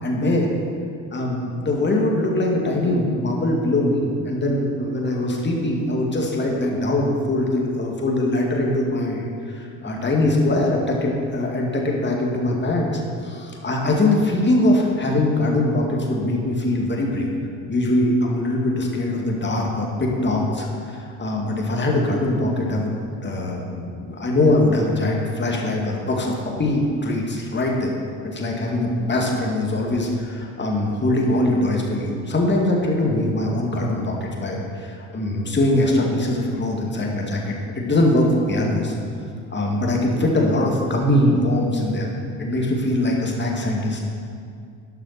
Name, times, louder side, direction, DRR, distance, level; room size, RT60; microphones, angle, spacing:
voice 1, 0.0-0.5 1.1-17.3 17.7-22.9 23.2-27.9 28.2-38.9 39.5-42.1 42.4-44.0, left 1 dB, 25° left, -1 dB, 2.3 m, -22 dB
11.5 x 8.9 x 4.4 m, 2.3 s
figure-of-eight pair, 50°, 41 cm